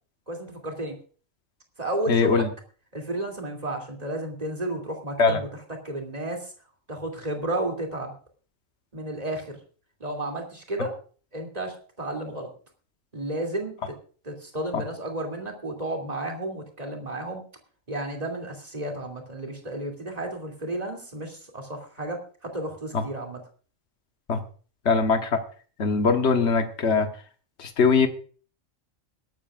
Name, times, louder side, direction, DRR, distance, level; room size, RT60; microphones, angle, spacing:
voice 1, 0.3-0.9 1.8-2.4 2.9-5.5 5.8-6.5 6.9-8.1 8.9-9.6 10.0-10.9 11.3-12.5 13.1-13.8 14.2-17.4 17.9-23.4, right 1 dB, 30° right, 1 dB, 2.9 m, -32 dB
voice 2, 2.1-2.5 5.2-5.4 14.7-14.8 22.9-23.0 24.3-24.4 24.8-25.4 25.8-27.1 27.6-28.1, left 4 dB, 55° left, 5 dB, 1.5 m, -21 dB
22.0 x 12.0 x 2.5 m, 0.41 s
omnidirectional pair, 1.4 m